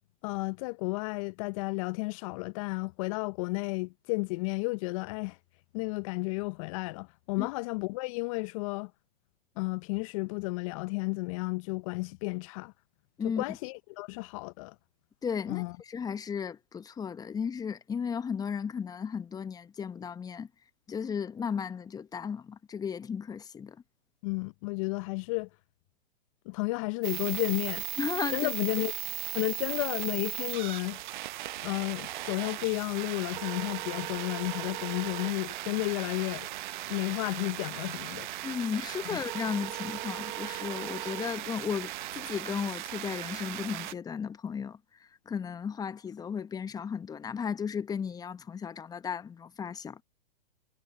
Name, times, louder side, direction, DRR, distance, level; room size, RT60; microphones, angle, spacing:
voice 1, 0.2-5.4 5.7-8.9 9.6-12.7 13.2-14.7 15.5-15.8 24.2-25.5 26.5-27.8 28.3-28.9 29.3-31.0 31.6-36.5 36.9-38.3 39.1-39.2, left 27 dB, 35° left, 0.6 m, -32 dB
voice 2, 15.2-20.5 20.9-23.8 28.0-28.5 28.8-28.9 38.4-50.0, left 7 dB, 15° left, 1.1 m, -35 dB
sound 1, 27.0-43.9, right 15 dB, 55° right, 0.9 m, -37 dB
hypercardioid pair, 115°, 29 cm